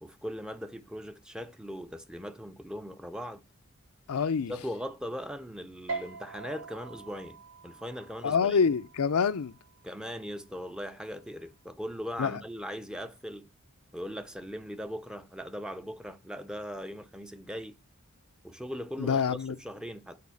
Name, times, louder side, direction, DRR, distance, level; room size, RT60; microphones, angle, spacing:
voice 1, 0.0-3.4 4.5-8.6 9.8-13.5 13.9-17.8 18.4-20.2, equal, 5° right, 0.5 m, -39 dB
voice 2, 4.1-4.5 8.2-9.5 12.2-12.3 19.0-19.5, left 6 dB, 85° left, 0.5 m, -26 dB
sound 1, 5.9-12.7, right 4 dB, 90° right, 3.7 m, -45 dB
8.5 x 4.1 x 6.9 m
head